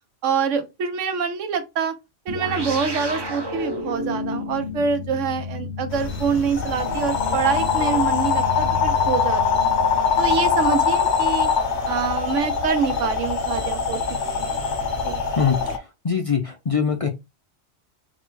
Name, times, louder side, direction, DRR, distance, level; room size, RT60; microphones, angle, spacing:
voice 1, 0.2-1.9 2.3-9.7 10.2-11.5 11.9-14.0 14.4-14.5 15.0-15.2, right 6 dB, 85° right, 1.1 m, -25 dB
sound 1, 2.3-11.1, left 2 dB, 30° right, 0.5 m, -32 dB
sound 2, 5.9-15.8, left 6 dB, 70° left, 1.0 m, -23 dB
voice 2, 15.4-17.1, left 6 dB, 40° left, 0.5 m, -23 dB
4.1 x 2.2 x 4.5 m
omnidirectional pair, 1.2 m